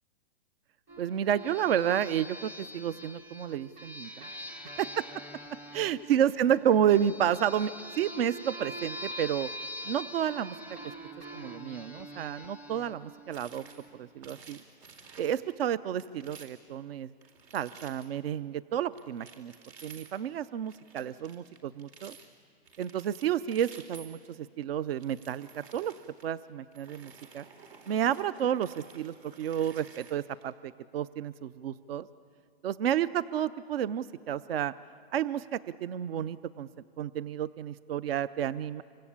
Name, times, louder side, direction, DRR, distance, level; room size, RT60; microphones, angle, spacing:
sound 1, 0.9-14.1, equal, 5° right, 0.6 m, -44 dB
voice 1, 1.0-4.3 4.8-5.0 5.8-9.5 9.8-10.6 10.8-10.9 11.3-13.6 13.9-14.6 15.2-17.1 17.5-19.5 19.8-22.2 22.8-25.9 26.2-27.5 27.9-32.1 32.6-34.7 35.1-36.7 37.0-38.8, right 10 dB, 65° right, 17 dB, 0.6 m, -31 dB
sound 2, 13.3-13.9 14.2-15.4 16.0-16.7 17.2-18.1 18.9-20.2 20.6-22.3 22.7-24.4 24.9-26.2 26.7-30.4, right 5 dB, 85° right, 4.0 m, -53 dB
27.0 x 24.5 x 8.6 m, 2.2 s
hypercardioid pair, 145°, 31 cm